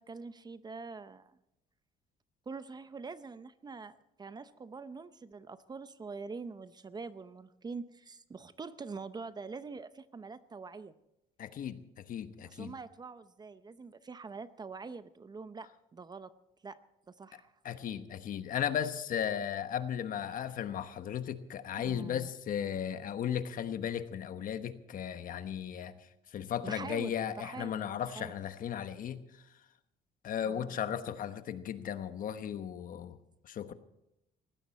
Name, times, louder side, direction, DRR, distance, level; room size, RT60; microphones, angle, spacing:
voice 1, 0.0-1.4 2.5-10.9 12.4-16.3 16.6-16.8 17.1-17.5 21.8-22.3 26.6-28.4 30.4-30.8, right 4 dB, 25° right, 13 dB, 0.7 m, -45 dB
voice 2, 11.4-12.7 17.6-26.0 26.3-29.2 30.2-33.2 33.4-33.7, left 9 dB, 55° left, 11 dB, 1.1 m, -36 dB
19.0 x 16.0 x 4.2 m, 0.86 s
cardioid pair, 110°, 17 cm